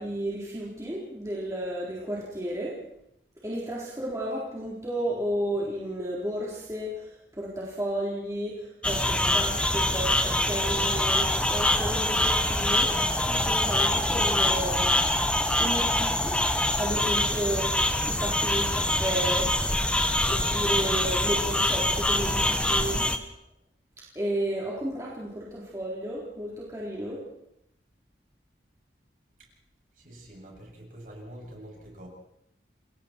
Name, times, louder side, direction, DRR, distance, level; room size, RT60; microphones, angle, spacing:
voice 1, 0.0-2.8 3.4-14.9 15.6-16.4 16.8-17.7 18.0-19.5 20.3-23.1 24.2-27.2, right 1 dB, 15° right, -5 dB, 3.9 m, -32 dB
sound 1, 8.8-23.2, left 1 dB, 5° left, 1.1 m, -25 dB
voice 2, 30.0-32.1, right 1 dB, 50° right, -1 dB, 7.6 m, -45 dB
29.0 x 21.5 x 4.6 m, 0.79 s
head